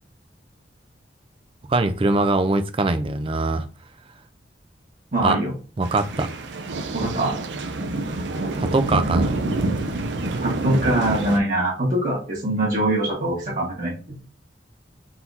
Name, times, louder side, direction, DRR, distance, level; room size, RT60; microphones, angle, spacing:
voice 1, 1.7-3.7 5.2-5.4 5.8-6.3 8.6-9.3, right 2 dB, 30° right, 0.4 m, -22 dB
voice 2, 5.1-5.5 6.9-7.4 10.4-14.2, right 1 dB, 50° right, 1.5 m, -23 dB
sound 1, 5.8-11.4, right 2 dB, 85° right, 0.6 m, -27 dB
3.9 x 2.9 x 4.0 m
head